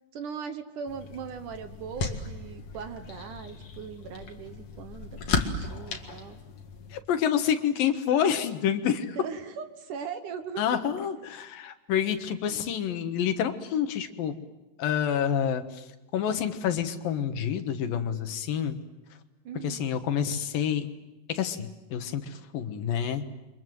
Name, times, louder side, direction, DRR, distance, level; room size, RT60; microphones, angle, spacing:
voice 1, 0.1-6.4 9.2-10.8 12.5-12.6 19.5-19.8, right 6 dB, 65° right, 9 dB, 2.5 m, -39 dB
sound 1, 0.9-7.0, left 4 dB, 50° left, 2.8 m, -35 dB
voice 2, 6.9-9.2 10.6-14.3 14.8-15.9 16.1-18.8 19.6-20.9 21.3-23.2, left 8 dB, 75° left, 8 dB, 3.0 m, -28 dB
30.0 x 25.0 x 7.8 m, 1.0 s
omnidirectional pair, 4.3 m